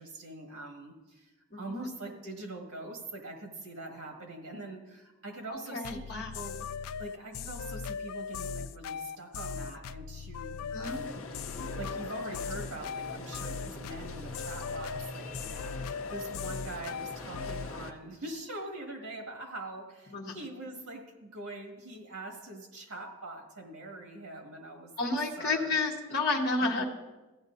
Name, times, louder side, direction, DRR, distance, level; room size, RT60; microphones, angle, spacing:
voice 1, 0.0-6.6 7.0-25.1 25.4-25.8 26.6-26.8, right 2 dB, 85° right, 2 dB, 1.9 m, -43 dB
voice 2, 1.5-1.8 5.5-6.4 10.7-11.0 20.1-20.4 25.0-26.8, left 3 dB, 45° left, -3 dB, 1.0 m, -31 dB
sound 1, 5.8-17.7, left 6 dB, 85° left, 0.3 m, -38 dB
sound 2, 10.8-17.9, left 2 dB, 70° left, 0.7 m, -43 dB
15.0 x 8.8 x 2.7 m, 1.1 s
head